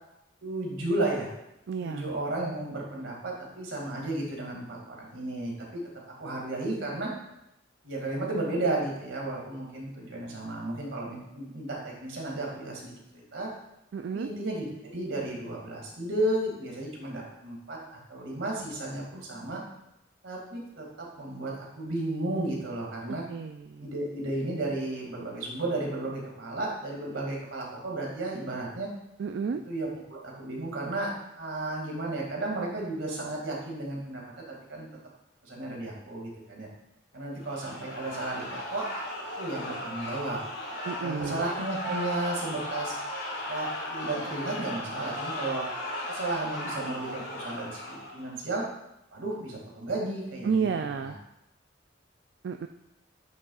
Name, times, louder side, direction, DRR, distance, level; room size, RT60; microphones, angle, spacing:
voice 1, 0.4-1.3 1.8-5.8 6.1-7.1 7.8-13.5 14.1-14.7 14.9-19.6 20.2-23.2 23.8-28.9 29.7-34.2 34.5-34.9 35.4-36.7 37.1-38.9 39.4-40.4 41.0-42.9 43.5-45.6 46.1-48.6 49.1-50.7 51.0-51.1, right 2 dB, 85° right, -2 dB, 2.2 m, -33 dB
voice 2, 1.7-2.1 13.9-14.3 23.1-23.9 29.2-29.6 40.9-41.5 50.4-51.2 52.4-52.7, right 6 dB, 65° right, 6 dB, 0.3 m, -31 dB
sound 1, 37.4-48.3, left 1 dB, 70° left, 2.2 m, -36 dB
9.2 x 6.2 x 2.4 m, 0.85 s
head